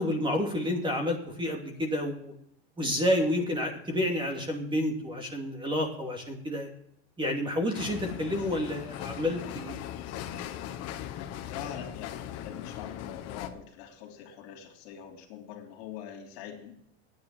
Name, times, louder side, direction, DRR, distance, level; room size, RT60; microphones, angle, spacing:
voice 1, 0.0-2.3 2.8-6.7 7.2-9.8, left 1 dB, 15° right, 2 dB, 2.6 m, -29 dB
sound 1, 7.7-13.5, left 11 dB, 50° left, 1.4 m, -39 dB
voice 2, 11.4-16.7, left 9 dB, 70° left, 2 dB, 3.3 m, -43 dB
9.6 x 9.3 x 7.6 m, 0.73 s
supercardioid pair, 120°, 32 cm